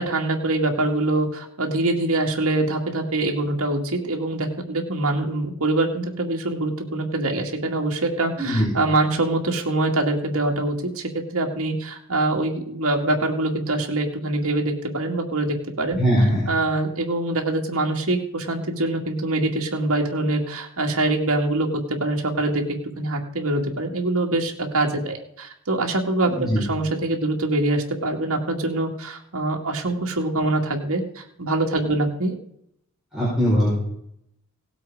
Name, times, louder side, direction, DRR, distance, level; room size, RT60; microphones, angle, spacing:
voice 1, 0.0-16.0 16.5-22.6 23.0-32.3, right 2 dB, 70° right, 1 dB, 2.2 m, -24 dB
voice 2, 8.4-8.7 16.0-16.5 26.4-26.7 33.1-33.7, equal, ahead, -9 dB, 5.1 m, -20 dB
17.5 x 7.9 x 4.9 m, 0.73 s
head